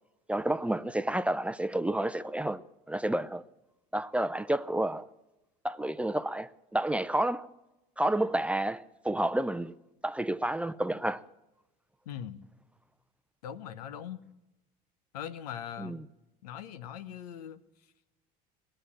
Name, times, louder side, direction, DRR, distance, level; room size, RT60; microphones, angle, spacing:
voice 1, 0.3-2.6 2.9-3.4 3.9-5.1 5.6-7.5 8.0-9.7 10.0-11.2 15.8-16.0, right 1 dB, 5° right, 0.6 m, -30 dB
voice 2, 12.1-12.4 13.4-14.2 15.1-16.0 16.4-17.6, left 9 dB, 90° left, 0.9 m, -41 dB
18.5 x 7.8 x 10.0 m
hypercardioid pair, 85°, 19 cm